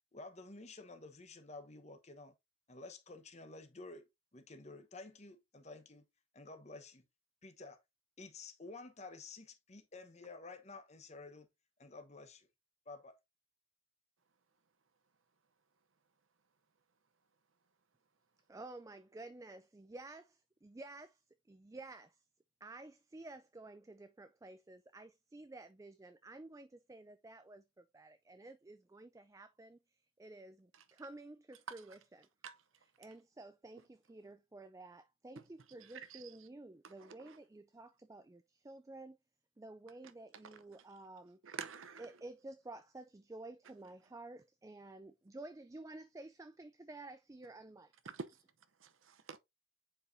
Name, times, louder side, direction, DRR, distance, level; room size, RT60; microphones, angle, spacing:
voice 1, 0.1-2.3 2.7-6.1 6.3-7.0 7.4-7.8 8.2-11.5 11.8-12.5 12.9-13.2, left 3 dB, 35° left, 1.1 m, -51 dB
voice 2, 18.5-21.2 21.5-22.2 22.6-29.8 30.2-32.3 33.0-39.2 39.6-41.4 42.0-47.9, right 2 dB, 15° right, 0.3 m, -52 dB
voice 3, 35.8-36.5 36.8-37.4 40.4-40.6 41.4-42.2 48.0-48.4 48.8-49.4, right 5 dB, 85° right, 0.8 m, -48 dB
7.7 x 4.8 x 2.7 m
head